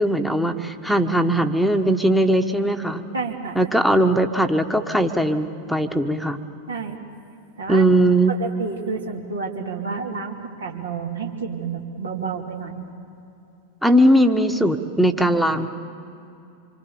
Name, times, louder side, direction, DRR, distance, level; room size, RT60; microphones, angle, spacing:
voice 1, 0.0-3.0 3.5-6.4 7.7-8.3 13.8-15.7, right 1 dB, ahead, 6 dB, 1.3 m, -19 dB
voice 2, 3.1-3.7 6.7-7.0 7.6-7.9 8.3-12.8, right 5 dB, 70° right, 1 dB, 2.8 m, -30 dB
26.5 x 24.5 x 7.2 m, 2.8 s
figure-of-eight pair, 90°, 0 cm